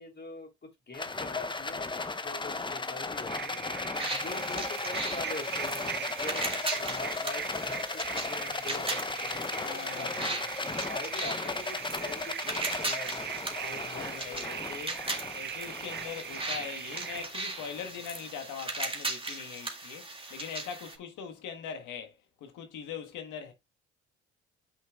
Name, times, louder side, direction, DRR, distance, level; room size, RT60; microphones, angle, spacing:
voice 1, 0.0-3.7 4.1-10.4 10.9-14.6 15.8-16.0, left 3 dB, 35° left, 3.3 m, -44 dB
Rattle, 0.9-18.3, left 3 dB, 15° left, 0.8 m, -36 dB
sound 1, 3.3-17.2, right 9 dB, 35° right, 0.5 m, -40 dB
sound 2, 4.0-21.0, right 2 dB, 15° right, 2.0 m, -38 dB
voice 2, 9.6-10.5 13.5-15.0 15.3-23.5, left 7 dB, 70° left, 1.5 m, -42 dB
8.8 x 5.5 x 2.3 m
hypercardioid pair, 60°, 31 cm